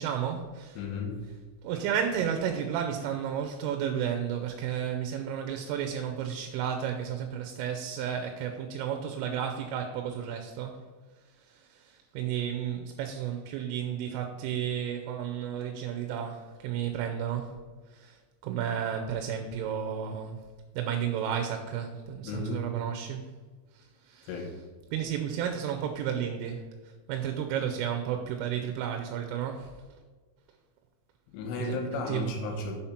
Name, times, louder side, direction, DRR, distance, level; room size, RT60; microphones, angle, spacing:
voice 1, 0.0-0.8 1.6-10.8 11.5-17.5 17.9-18.2 18.4-20.4 20.8-23.2 23.8-24.3 24.9-26.6 27.1-29.7 31.6-32.2, right 9 dB, 90° right, 3.2 m, -32 dB
voice 2, 0.8-1.4 22.2-22.8 24.3-24.7 31.3-32.8, left 3 dB, 80° left, 3.3 m, -35 dB
6.9 x 4.3 x 5.6 m
omnidirectional pair, 5.7 m